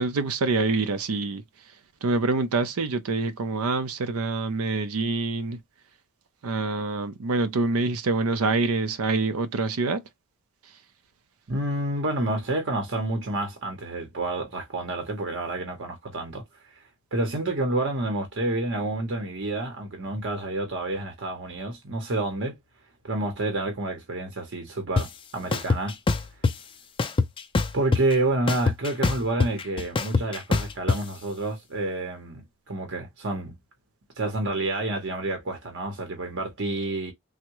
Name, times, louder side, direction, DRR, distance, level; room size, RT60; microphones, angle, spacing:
voice 1, 0.0-5.6 6.4-10.0 10.6-10.8, right 3 dB, 85° right, 0.5 m, -26 dB
voice 2, 11.5-16.8 17.1-22.6 23.0-26.0 27.7-33.6 34.2-37.1, right 2 dB, 60° right, 0.8 m, -29 dB
sound 1, 25.0-25.1 25.5-26.5 27.0-28.1 28.5-31.0, left 3 dB, 25° left, 0.4 m, -23 dB
3.5 x 2.1 x 2.9 m
head